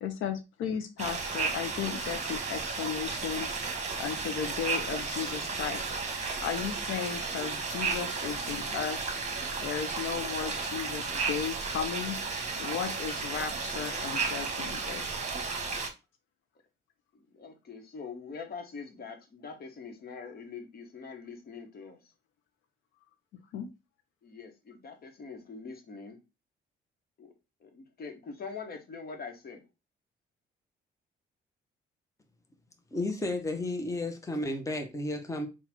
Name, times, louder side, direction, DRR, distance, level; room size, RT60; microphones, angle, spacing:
voice 1, 0.0-3.5 4.0-5.8 6.4-9.1 9.6-12.2 12.6-15.1 23.5-23.7, left 8 dB, 85° left, 0.6 m, -35 dB
sound 1, 1.0-15.9, right 4 dB, 35° right, 1.1 m, -33 dB
voice 2, 17.1-22.1 24.2-26.2 27.2-27.3 27.6-29.6, left 5 dB, 50° left, 1.2 m, -44 dB
voice 3, 32.9-35.5, left 2 dB, 15° left, 0.9 m, -32 dB
4.0 x 2.4 x 4.3 m
cardioid pair, 90°, 20 cm